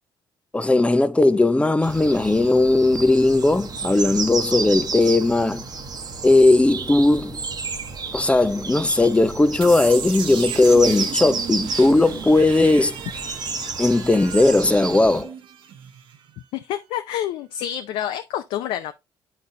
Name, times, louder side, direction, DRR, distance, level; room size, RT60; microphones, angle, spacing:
voice 1, 0.5-5.6 6.2-7.4 8.1-13.0 13.8-15.3, left 2 dB, 15° left, 0.6 m, -18 dB
sound 1, 1.8-15.2, right 4 dB, 45° right, 1.1 m, -31 dB
sound 2, 9.6-16.4, right 7 dB, 70° right, 0.9 m, -36 dB
voice 2, 16.5-18.9, left 11 dB, 80° left, 0.5 m, -28 dB
11.0 x 4.0 x 2.6 m
supercardioid pair, 75°, 9 cm